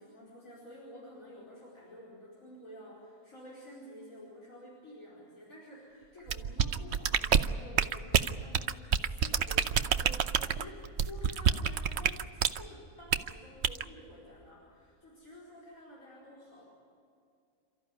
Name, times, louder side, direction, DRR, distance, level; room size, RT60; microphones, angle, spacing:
voice 1, 0.0-16.6, equal, 65° left, -5 dB, 5.2 m, -50 dB
sound 1, 6.3-12.6 13.1-13.3 13.6-13.8, right 7 dB, 55° right, 1.0 m, -27 dB
28.5 x 14.5 x 9.6 m, 2.5 s
omnidirectional pair, 1.5 m